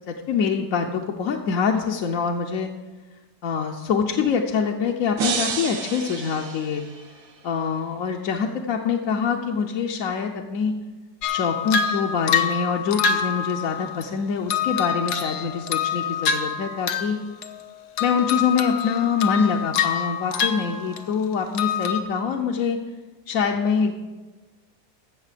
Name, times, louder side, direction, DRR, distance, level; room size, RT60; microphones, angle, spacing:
voice 1, 0.1-2.7 3.4-6.8 7.4-10.7 11.3-17.2 18.0-22.8 23.3-24.0, left 6 dB, 65° left, 1 dB, 1.0 m, -25 dB
sound 1, 5.2-7.3, right 5 dB, 65° right, 1.4 m, -29 dB
sound 2, 11.2-14.0 14.5-17.2 17.4-17.7 18.0-21.2 21.5-22.0, left 7 dB, 85° left, 1.4 m, -26 dB
15.5 x 6.6 x 5.0 m, 1.3 s
omnidirectional pair, 1.7 m